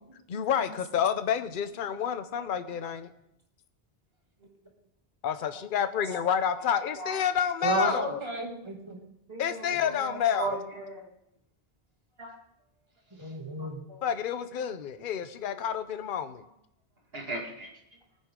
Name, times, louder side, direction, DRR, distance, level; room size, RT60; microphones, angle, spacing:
voice 1, 0.3-3.1 5.2-8.2 9.4-10.5 14.0-16.4, left 8 dB, 55° left, 11 dB, 0.8 m, -29 dB
voice 2, 7.6-9.0 13.1-13.8 15.5-15.6, right 2 dB, 25° right, 0 dB, 2.3 m, -33 dB
voice 3, 9.3-11.0 12.2-12.3 13.6-14.0 17.1-17.7, right 3 dB, 70° right, 0 dB, 2.6 m, -37 dB
18.5 x 9.7 x 3.7 m, 0.78 s
omnidirectional pair, 1.1 m